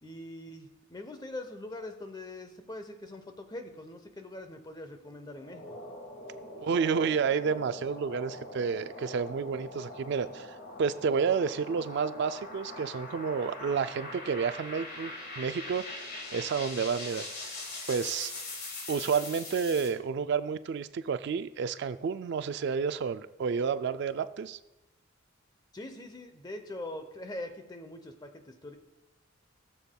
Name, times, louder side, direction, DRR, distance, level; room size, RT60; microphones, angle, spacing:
voice 1, 0.0-5.8 25.7-28.8, left 1 dB, 20° left, 7 dB, 0.7 m, -42 dB
sound 1, 5.3-19.9, left 2 dB, 50° left, 1.8 m, -42 dB
voice 2, 6.6-15.8 16.3-17.5 17.9-18.3 18.9-24.6, right 6 dB, 55° right, 12 dB, 0.3 m, -30 dB
18.5 x 7.0 x 2.2 m, 0.96 s
head